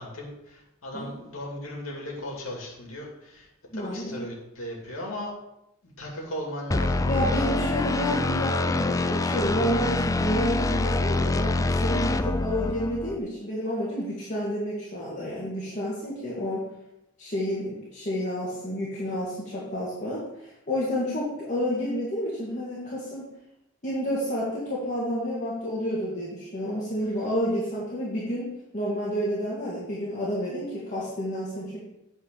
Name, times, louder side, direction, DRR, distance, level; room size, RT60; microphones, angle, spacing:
voice 1, 0.0-3.5 3.7-5.3 6.0-7.7 12.0-12.3, left 1 dB, 85° left, -2 dB, 2.5 m, -37 dB
voice 2, 3.7-4.3 7.1-16.7 17.2-23.3 23.8-31.8, equal, 35° left, -8 dB, 2.4 m, -30 dB
sound 1, 6.7-13.2, left 2 dB, 15° left, 0.3 m, -26 dB
9.1 x 4.8 x 6.9 m, 0.86 s
head